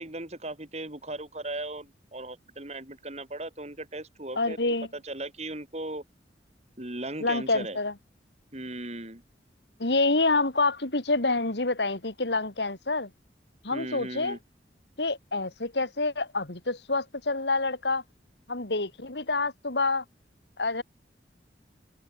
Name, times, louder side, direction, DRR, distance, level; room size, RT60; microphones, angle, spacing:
voice 1, 0.0-4.6 4.9-6.0 6.8-7.8 8.5-9.2 13.7-14.4, right 2 dB, 40° right, 5.5 m, -37 dB
voice 2, 4.4-4.9 7.2-7.9 9.8-13.1 13.6-14.4 15.0-18.0 18.5-20.0 20.6-20.8, left 3 dB, 75° left, 2.8 m, -27 dB
head